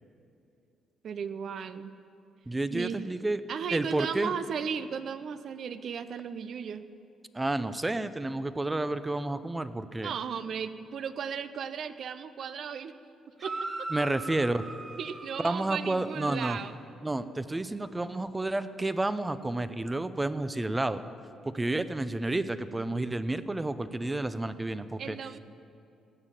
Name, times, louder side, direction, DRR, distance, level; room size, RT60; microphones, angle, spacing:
voice 1, 1.0-1.9 2.7-3.0 3.5-6.8 10.0-12.9 13.4-13.9 15.0-16.8 25.0-25.4, right 7 dB, 60° right, 12 dB, 0.6 m, -35 dB
voice 2, 2.5-3.4 3.7-4.3 7.3-10.1 13.9-14.7 15.4-16.6 17.0-21.0 21.5-25.2, right 2 dB, 15° right, 13 dB, 0.6 m, -30 dB
sound 1, 13.4-16.7, right 2 dB, 30° right, 3.2 m, -40 dB
16.5 x 7.2 x 9.1 m, 2.7 s
cardioid pair, 90°, 0 cm